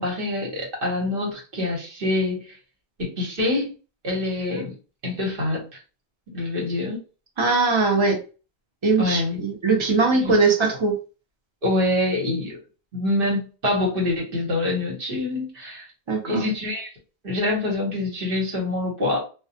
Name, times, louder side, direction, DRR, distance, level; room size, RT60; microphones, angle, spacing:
voice 1, 0.0-2.5 3.0-3.7 4.0-4.7 5.0-5.6 6.3-7.0 9.0-9.4 10.2-10.3 11.6-12.6 12.9-15.9 16.2-16.9 17.2-19.2, left 2 dB, 55° right, 0 dB, 1.1 m, -25 dB
voice 2, 7.4-8.2 8.8-10.9 16.1-16.4, right 3 dB, 35° right, 1 dB, 0.6 m, -21 dB
2.2 x 2.1 x 2.7 m, 0.34 s
omnidirectional pair, 1.1 m